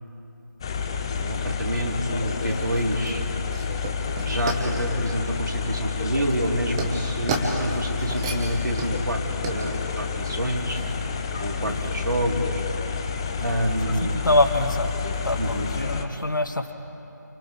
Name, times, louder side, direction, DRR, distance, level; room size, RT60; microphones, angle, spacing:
sound 1, 0.6-16.1, left 5 dB, 15° left, 0.6 m, -29 dB
voice 1, 1.2-3.2 4.3-10.8 11.4-12.6 13.4-14.2 15.4-15.7, right 1 dB, 80° right, 1 dB, 3.3 m, -28 dB
sound 2, 1.8-11.0, right 3 dB, 15° right, 1.2 m, -34 dB
voice 2, 13.8-14.9 15.2-16.7, left 1 dB, 80° left, 6 dB, 2.1 m, -24 dB
28.5 x 28.5 x 3.8 m, 2.9 s
figure-of-eight pair, 165°, 10 cm